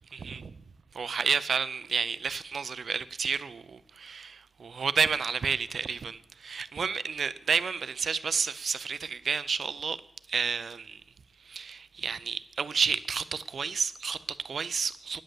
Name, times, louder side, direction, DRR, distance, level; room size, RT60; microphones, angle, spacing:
voice 1, 0.1-0.5 0.9-10.0 10.3-11.0 11.5-15.2, right 5 dB, 60° right, 0.5 m, -31 dB
10.0 x 7.6 x 7.7 m
wide cardioid pair, 170°, 0 cm